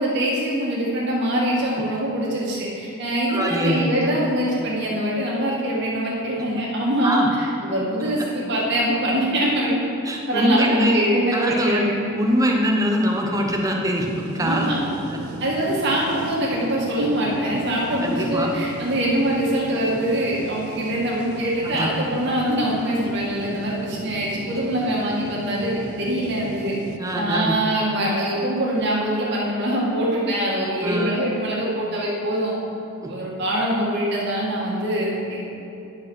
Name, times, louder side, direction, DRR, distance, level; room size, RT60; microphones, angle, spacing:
voice 1, 0.0-9.8 10.3-12.1 14.4-14.8 15.4-26.7 27.2-32.5 33.1-35.4, right 1 dB, 50° right, -5 dB, 2.1 m, -23 dB
voice 2, 3.3-3.8 7.0-7.3 10.0-11.0 11.3-11.8 12.1-15.2 18.0-18.5 21.6-21.9 27.0-27.5 30.8-31.1 33.0-33.1, equal, 15° right, 1 dB, 0.9 m, -23 dB
sound 1, 14.0-27.0, right 3 dB, 85° right, 0.6 m, -37 dB
10.5 x 5.1 x 6.3 m, 2.8 s
head